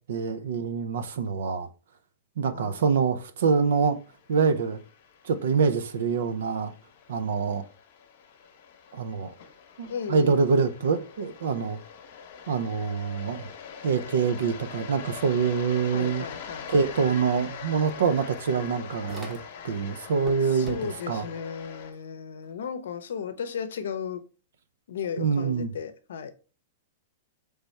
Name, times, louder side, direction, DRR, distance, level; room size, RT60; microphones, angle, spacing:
voice 1, 0.1-1.7 2.4-4.0 4.3-4.8 5.2-6.7 7.1-7.6 8.9-9.3 9.8-11.8 12.5-13.5 13.8-16.3 16.7-19.4 19.6-21.2 25.2-25.7, right 5 dB, 80° right, 0.5 m, -25 dB
voice 2, 2.5-2.8 9.9-10.5 15.9-16.7 20.4-24.2 24.9-26.3, left 7 dB, 85° left, 0.6 m, -35 dB
sound 1, 3.6-21.9, left 7 dB, 55° left, 0.8 m, -43 dB
sound 2, 17.9-19.8 20.1-21.2, equal, 15° right, 0.8 m, -46 dB
4.1 x 3.3 x 3.3 m
hypercardioid pair, 150°, 0 cm